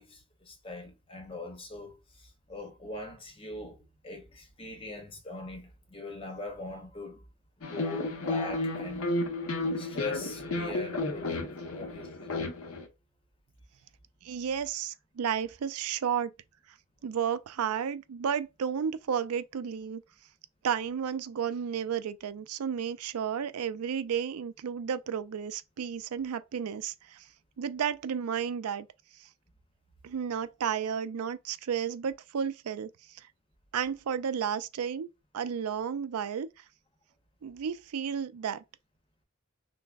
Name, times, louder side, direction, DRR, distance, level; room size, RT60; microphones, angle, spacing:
voice 1, 0.0-7.3 7.6-9.1 9.8-12.3, left 2 dB, 25° left, 0.8 m, -41 dB
sound 1, 7.6-12.8, left 2 dB, 75° left, 0.8 m, -32 dB
voice 2, 14.2-16.3 17.0-20.0 20.6-27.3 27.6-28.9 30.0-32.9 33.2-33.3 33.7-36.5 37.4-38.6, right 7 dB, 90° right, 0.4 m, -32 dB
5.8 x 2.0 x 2.3 m
head